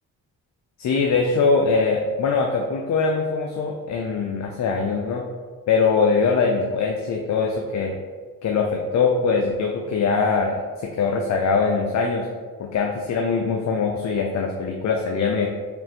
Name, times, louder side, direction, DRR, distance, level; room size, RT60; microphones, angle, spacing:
voice 1, 0.8-5.2 5.7-7.9 8.4-12.3 12.6-15.5, left 4 dB, 50° left, 1 dB, 0.4 m, -22 dB
3.4 x 2.5 x 2.7 m, 1.5 s
supercardioid pair, 55°, 38 cm